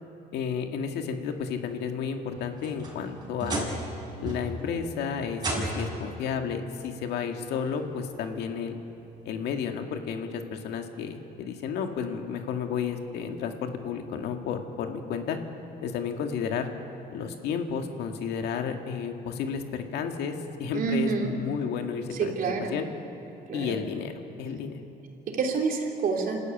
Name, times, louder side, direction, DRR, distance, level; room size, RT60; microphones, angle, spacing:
voice 1, 0.3-3.7 4.2-8.8 9.3-15.4 15.8-16.7 17.1-20.3 20.6-22.9 23.5-24.1 24.4-24.8, left 6 dB, 80° left, 5 dB, 2.0 m, -32 dB
sound 1, 2.3-3.9 4.2-4.7 5.4-6.1 7.2-7.3 8.0-8.1 9.6-9.7, right 2 dB, 25° right, 6.6 m, -33 dB
voice 2, 20.7-21.3 22.1-22.8 23.5-23.8 25.4-26.4, right 5 dB, 55° right, 1 dB, 3.5 m, -28 dB
27.5 x 13.5 x 9.2 m, 2.9 s
cardioid pair, 110°, 17 cm